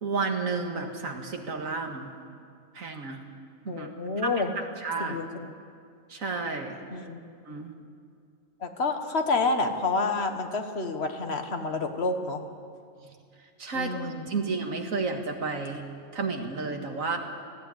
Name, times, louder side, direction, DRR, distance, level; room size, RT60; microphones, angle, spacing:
voice 1, 0.0-2.1 2.7-3.2 3.6-3.9 4.2-5.2 6.1-6.8 7.5-7.7 13.0-13.2 13.6-15.9 16.1-17.2, right 4 dB, 75° right, 3 dB, 2.2 m, -31 dB
voice 2, 3.7-4.5 5.0-5.5 6.9-7.2 8.6-12.4 13.7-14.4, left 3 dB, 50° left, 6 dB, 1.6 m, -29 dB
19.0 x 14.5 x 9.8 m, 2.3 s
omnidirectional pair, 1.4 m